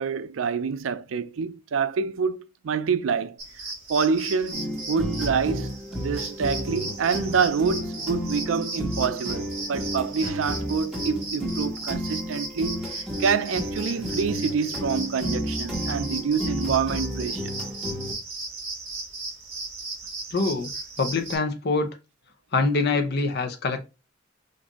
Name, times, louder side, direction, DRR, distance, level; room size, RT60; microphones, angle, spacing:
voice 1, 0.0-3.4 3.9-17.5, right 6 dB, 80° right, 0.4 m, -27 dB
sound 1, 3.4-21.4, right 2 dB, 55° right, 2.8 m, -36 dB
sound 2, 4.5-18.1, equal, 5° right, 1.3 m, -32 dB
voice 2, 20.3-20.7 21.0-22.0 22.5-23.8, left 3 dB, 55° left, 0.7 m, -24 dB
5.3 x 2.6 x 3.5 m
head